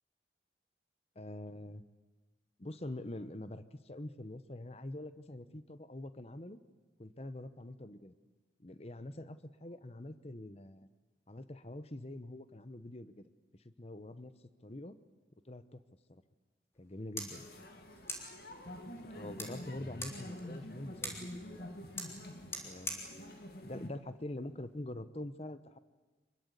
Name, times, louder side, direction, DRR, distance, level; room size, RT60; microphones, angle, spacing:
voice 1, 1.1-1.8 2.6-3.6 3.9-6.6 7.0-8.1 8.6-10.9 11.3-13.2 13.6-14.3 14.6-15.0 15.5-15.8 16.1-16.2 16.8-17.4 19.1-21.7 22.6-23.3 23.6-25.8, left 1 dB, 35° left, 12 dB, 1.0 m, -45 dB
sound 1, 16.7-24.8, left 1 dB, 15° left, 3.6 m, -47 dB
sound 2, 17.3-23.9, left 1 dB, 60° left, 2.8 m, -47 dB
26.0 x 22.5 x 8.3 m, 1.2 s
head